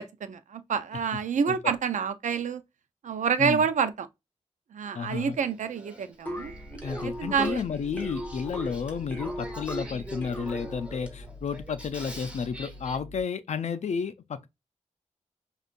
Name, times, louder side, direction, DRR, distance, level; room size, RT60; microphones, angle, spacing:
voice 1, 0.0-2.6 3.0-4.1 4.7-6.5 7.0-7.6, right 6 dB, 85° right, 0.5 m, -28 dB
voice 2, 4.9-5.4 6.8-14.5, left 6 dB, 65° left, 0.4 m, -32 dB
Male speech man speaking / Female speech woman speaking / Conversation, 5.3-13.0, right 1 dB, 10° right, 1.2 m, -45 dB
sound 1, 6.3-11.0, equal, 15° left, 1.3 m, -38 dB
sound 2, 6.4-13.2, equal, 60° right, 1.2 m, -45 dB
5.2 x 2.4 x 2.5 m
wide cardioid pair, 105°, 13 cm